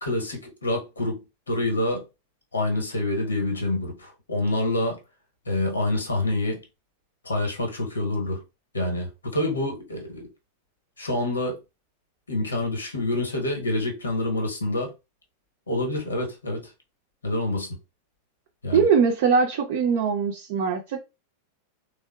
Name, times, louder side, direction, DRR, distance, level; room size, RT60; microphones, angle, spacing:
voice 1, 0.0-2.0 2.5-5.0 5.5-6.6 7.2-8.4 8.7-10.3 11.0-11.6 12.3-14.9 15.7-16.7 17.2-17.8 18.6-18.8, left 1 dB, 75° left, 1.0 m, -27 dB
voice 2, 18.7-21.0, right 6 dB, 50° right, 0.5 m, -21 dB
3.5 x 2.1 x 2.2 m
figure-of-eight pair, 90°, 0 cm